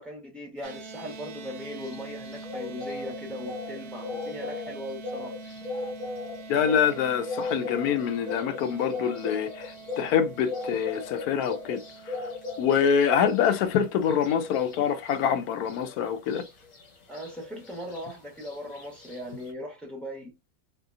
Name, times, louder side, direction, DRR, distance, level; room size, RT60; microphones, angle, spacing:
voice 1, 0.0-5.3 17.1-20.3, equal, ahead, 0.9 m, -39 dB
sound 1, 0.6-15.0, right 3 dB, 60° right, 0.8 m, -45 dB
sound 2, 0.7-19.5, left 3 dB, 60° left, 1.6 m, -39 dB
voice 2, 6.5-11.8 12.1-12.2 12.6-16.5, left 8 dB, 80° left, 1.1 m, -25 dB
3.6 x 2.8 x 2.5 m
omnidirectional pair, 1.6 m